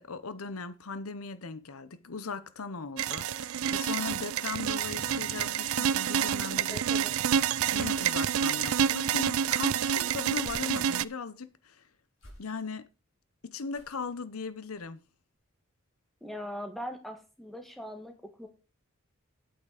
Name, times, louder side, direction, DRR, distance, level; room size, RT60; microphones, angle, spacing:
voice 1, 0.0-6.8 7.7-11.8 12.4-12.9 13.4-15.0, left 4 dB, 85° left, 0.8 m, -38 dB
sound 1, 3.0-11.0, right 8 dB, 80° right, 0.4 m, -28 dB
sound 2, 4.8-5.7 6.8-8.2, left 1 dB, 40° left, 2.0 m, -50 dB
voice 2, 6.7-7.2 16.2-18.5, left 1 dB, ahead, 1.5 m, -41 dB
sound 3, 11.2-11.3 12.1-12.9 13.7-14.2 14.7-15.0 15.3-15.4, equal, 70° left, 5.6 m, -55 dB
9.3 x 8.5 x 4.9 m
head